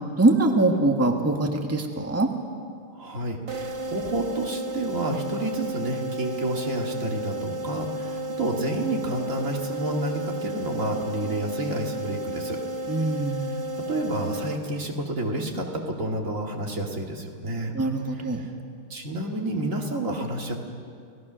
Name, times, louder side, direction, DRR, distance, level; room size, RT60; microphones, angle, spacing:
voice 1, 0.2-2.3 12.9-13.4 17.7-18.5, right 2 dB, 10° right, 3 dB, 1.4 m, -23 dB
voice 2, 2.9-12.6 13.9-17.7 18.1-18.5 18.9-20.6, right 1 dB, 70° right, 1 dB, 2.6 m, -30 dB
sound 1, 3.5-15.2, right 1 dB, 25° right, 0.9 m, -33 dB
30.0 x 17.5 x 6.2 m, 2.3 s
omnidirectional pair, 1.4 m